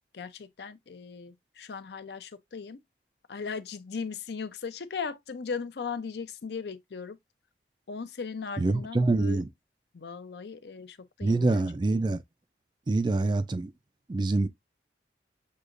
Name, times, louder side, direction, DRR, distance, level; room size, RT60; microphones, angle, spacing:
voice 1, 0.1-2.8 3.3-7.2 7.9-9.4 9.9-11.6, left 5 dB, 65° left, 0.5 m, -38 dB
voice 2, 8.6-9.5 11.2-12.2 12.9-13.7 14.1-14.5, right 2 dB, 25° right, 0.3 m, -25 dB
6.5 x 2.8 x 2.4 m
head